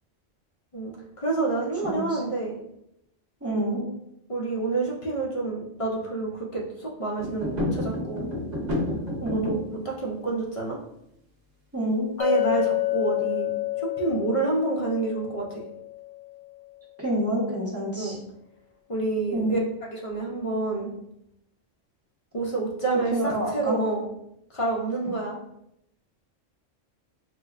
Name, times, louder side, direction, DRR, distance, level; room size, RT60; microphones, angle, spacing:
voice 1, 0.7-2.6 4.3-8.3 9.3-10.8 12.2-15.6 18.0-18.2 18.9-19.6 19.9-20.9 22.3-24.1 24.5-25.4, right 3 dB, 45° left, -2 dB, 0.4 m, -28 dB
voice 2, 1.8-2.2 3.4-3.9 9.2-9.6 11.7-12.1 17.0-18.2 19.3-19.6 23.1-23.8, right 1 dB, 15° right, -5 dB, 0.6 m, -27 dB
sound 1, 7.2-9.7, left 1 dB, 65° right, 1.1 m, -30 dB
Chink clink, 12.2-16.4, left 15 dB, 80° left, 1.0 m, -29 dB
4.6 x 2.1 x 2.4 m, 0.80 s
omnidirectional pair, 1.3 m